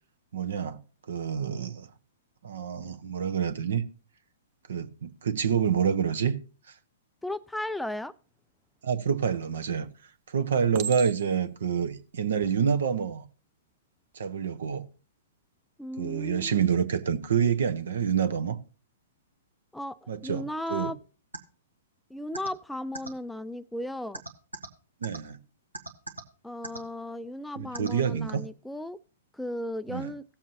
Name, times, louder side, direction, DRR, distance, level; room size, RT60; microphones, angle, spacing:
voice 1, 0.3-0.8 1.1-1.9 2.4-3.8 4.7-6.3 8.8-9.9 10.3-13.2 14.1-14.8 16.0-18.6 20.1-20.4 20.7-20.9 25.0-25.4 27.5-28.4 29.9-30.1, right 7 dB, 65° right, 1.1 m, -27 dB
voice 2, 7.2-8.1 15.8-16.7 19.7-21.0 22.1-24.2 26.4-29.0 29.3-30.2, left 1 dB, 5° left, 0.4 m, -35 dB
Chink clink, 9.3-9.8 10.7-11.5 12.3-12.5, right 8 dB, 40° right, 0.8 m, -38 dB
sound 1, 21.3-21.4 22.3-22.5 22.9-23.1 24.1-24.7 25.0-25.2 25.7-26.2 26.6-26.8 27.7-27.9, right 2 dB, 90° right, 1.5 m, -36 dB
17.5 x 7.3 x 2.8 m
figure-of-eight pair, 115°, 0 cm